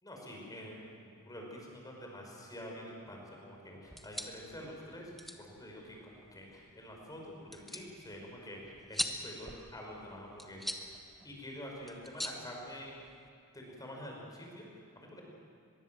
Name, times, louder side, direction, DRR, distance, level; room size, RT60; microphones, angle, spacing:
voice 1, 0.0-11.0 11.2-12.9 13.5-14.6 15.0-15.2, equal, 15° left, 0 dB, 5.4 m, -47 dB
sound 1, 3.8-13.3, equal, ahead, 1.2 m, -44 dB
23.5 x 22.0 x 7.7 m, 2.3 s
head